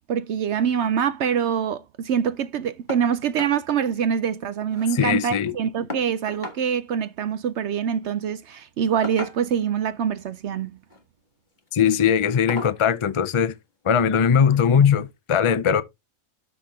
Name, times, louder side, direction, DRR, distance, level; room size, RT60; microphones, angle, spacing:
voice 1, 0.0-10.7, right 8 dB, 65° right, 0.8 m, -25 dB
sound 1, 2.9-3.1 3.4-3.6 4.0-4.1 4.3-5.0 5.9-6.6 7.9-8.1 9.0-9.7 10.7-11.0 11.5-11.7 12.5-12.8 14.1-14.2 14.7-14.8, left 2 dB, 35° left, 1.7 m, -36 dB
voice 2, 4.9-5.5 11.7-13.5 13.8-15.8, left 7 dB, 50° left, 0.3 m, -20 dB
12.5 x 4.3 x 3.5 m
omnidirectional pair, 1.5 m